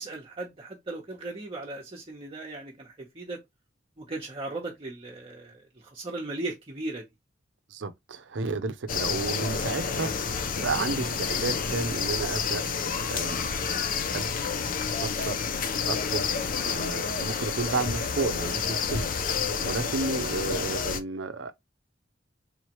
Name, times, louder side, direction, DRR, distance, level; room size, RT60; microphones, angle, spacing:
voice 1, 0.0-3.4 4.0-7.0 20.5-20.7, right 2 dB, 30° right, 0.9 m, -37 dB
voice 2, 7.7-13.5 14.1-14.3 15.0-15.4 15.8-16.3 16.6-19.1 19.4-21.5, right 3 dB, 75° right, 0.6 m, -32 dB
sound 1, 8.9-21.0, left 6 dB, 50° left, 0.5 m, -29 dB
3.8 x 3.2 x 2.9 m
head